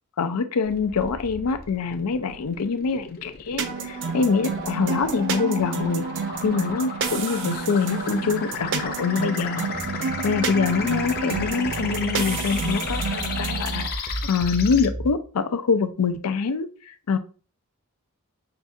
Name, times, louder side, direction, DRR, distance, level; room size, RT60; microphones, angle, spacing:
voice 1, 0.2-6.1 6.4-9.7 9.9-17.2, left 5 dB, 90° left, 10 dB, 0.5 m, -25 dB
sound 1, 0.7-14.9, left 5 dB, 40° left, 0.6 m, -35 dB
sound 2, 3.6-13.9, right 5 dB, 55° right, 0.5 m, -30 dB
sound 3, 9.7-15.1, right 1 dB, ahead, 0.6 m, -33 dB
5.8 x 2.3 x 2.6 m, 0.38 s
head